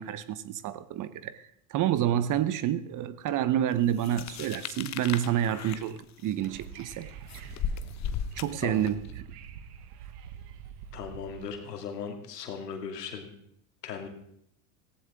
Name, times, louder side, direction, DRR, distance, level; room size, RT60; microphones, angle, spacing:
voice 1, 0.0-1.4 1.7-7.1 7.3-7.4 8.4-9.1, right 11 dB, 40° right, 1.0 m, -28 dB
sound 1, 4.0-9.1, left 8 dB, 35° left, 0.9 m, -37 dB
Wind / Subway metro underground, 6.5-11.5, right 8 dB, 75° right, 1.3 m, -45 dB
voice 2, 10.9-13.3 13.8-14.1, left 6 dB, 90° left, 2.4 m, -38 dB
18.0 x 15.5 x 3.6 m
hypercardioid pair, 90°, 47 cm